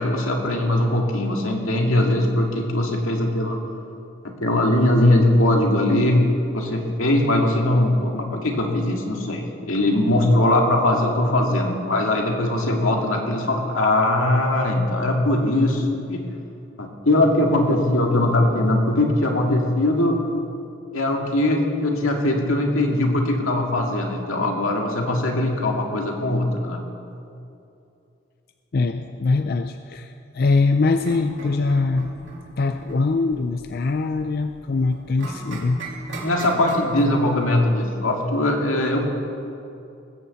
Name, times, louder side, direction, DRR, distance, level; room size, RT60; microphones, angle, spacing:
voice 1, 0.0-3.6 4.2-16.3 16.8-20.2 20.9-26.8 36.2-39.1, left 1 dB, 90° left, 1 dB, 2.1 m, -21 dB
voice 2, 28.7-32.1 32.6-35.8, left 3 dB, 45° left, 8 dB, 0.4 m, -22 dB
sound 1, 31.0-37.3, right 1 dB, 70° right, 2.6 m, -36 dB
19.5 x 7.0 x 8.0 m, 2.7 s
head